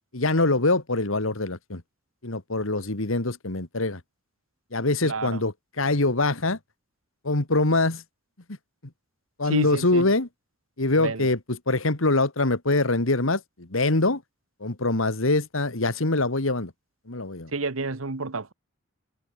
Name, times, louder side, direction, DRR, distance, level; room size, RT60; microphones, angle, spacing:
voice 1, 0.1-1.8 2.2-4.0 4.7-6.6 7.2-8.0 9.4-10.3 10.8-14.2 14.6-16.7 17.1-17.5, left 2 dB, 75° left, 2.2 m, -24 dB
voice 2, 5.0-5.4 9.5-10.1 11.0-11.3 17.5-18.5, right 3 dB, 80° right, 1.4 m, -29 dB
head